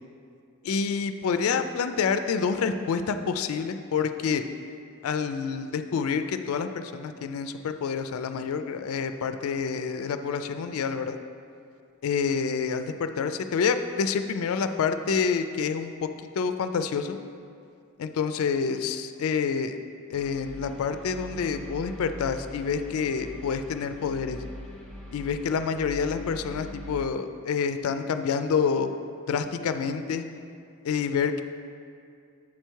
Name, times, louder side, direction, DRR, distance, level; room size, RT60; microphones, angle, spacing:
voice 1, 0.6-4.4 5.0-11.2 12.0-16.1 16.4-17.2 18.0-19.8 20.1-24.4 25.1-28.9 29.3-30.3 30.8-31.4, left 6 dB, 70° left, 9 dB, 0.3 m, -28 dB
sound 1, 20.1-27.1, equal, 5° left, 0.6 m, -42 dB
7.3 x 4.5 x 4.5 m, 2.4 s
head